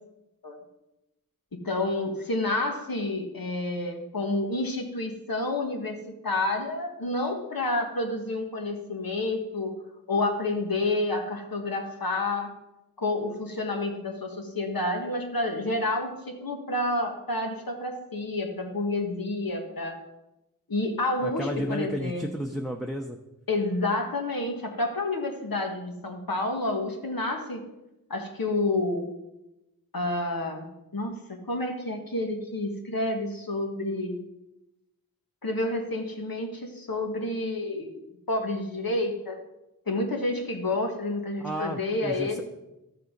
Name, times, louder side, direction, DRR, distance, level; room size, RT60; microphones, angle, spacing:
voice 1, 1.5-9.7 10.1-12.5 13.0-20.0 20.7-22.2 23.5-27.6 28.1-29.1 29.9-34.2 35.4-38.0 38.3-39.4 39.9-42.4, left 2 dB, 80° left, 3 dB, 1.7 m, -29 dB
voice 2, 21.2-23.2 41.4-42.4, equal, ahead, 2 dB, 0.7 m, -32 dB
12.5 x 6.8 x 5.2 m, 0.94 s
wide cardioid pair, 50°, 35 cm